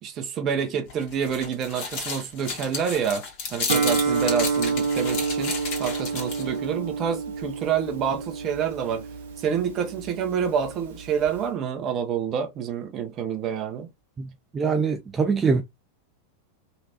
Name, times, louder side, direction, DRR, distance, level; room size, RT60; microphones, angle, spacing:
voice 1, 0.0-3.2 3.5-9.1 9.4-13.9, right 7 dB, 35° right, 0.8 m, -28 dB
sound 1, 0.9-6.6, left 4 dB, 45° left, 1.6 m, -32 dB
Guitar, 3.7-11.4, right 5 dB, 60° right, 1.0 m, -29 dB
voice 2, 14.5-15.6, right 5 dB, 15° right, 0.4 m, -23 dB
3.3 x 3.0 x 2.9 m
figure-of-eight pair, 90°, 0 cm